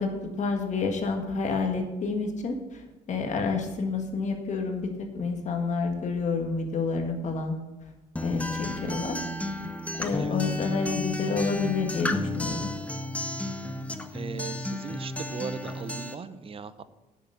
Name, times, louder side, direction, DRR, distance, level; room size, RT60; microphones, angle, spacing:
voice 1, 0.0-7.6 8.2-9.2 10.0-12.7, left 4 dB, 45° left, 4 dB, 1.6 m, -29 dB
Acoustic guitar, 8.2-16.1, left 2 dB, 10° left, 0.8 m, -32 dB
voice 2, 14.1-16.8, right 6 dB, 35° right, 14 dB, 0.7 m, -38 dB
10.0 x 6.7 x 6.8 m, 1.1 s
cardioid pair, 110°, 17 cm